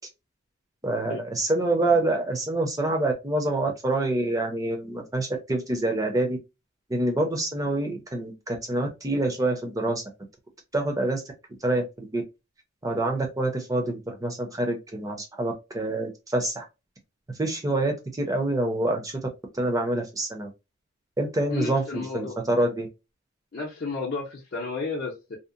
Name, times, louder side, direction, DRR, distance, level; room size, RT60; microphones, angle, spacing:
voice 1, 0.8-6.4 6.9-10.0 10.7-11.2 11.6-12.2 12.8-16.6 17.4-19.2 19.5-20.5 21.2-22.9, right 2 dB, 15° right, 0.6 m, -26 dB
voice 2, 21.5-22.4 23.5-25.4, left 4 dB, 45° left, 0.6 m, -32 dB
2.7 x 2.0 x 2.4 m
head